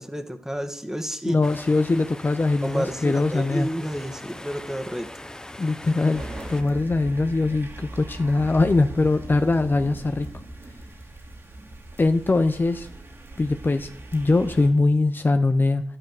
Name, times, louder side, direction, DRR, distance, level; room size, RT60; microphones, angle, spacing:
voice 1, 0.0-1.4 2.6-5.1, equal, 10° right, 8 dB, 2.0 m, -30 dB
voice 2, 1.2-3.7 5.6-6.2 6.5-10.3 12.0-12.9 13.4-15.8, left 3 dB, 40° left, 9 dB, 0.9 m, -22 dB
sound 1, 1.4-6.6, left 1 dB, 15° left, 1.1 m, -41 dB
sound 2, 6.1-14.7, right 1 dB, 55° right, 3.5 m, -39 dB
11.5 x 11.0 x 6.7 m, 0.64 s
cardioid pair, 45°, 5 cm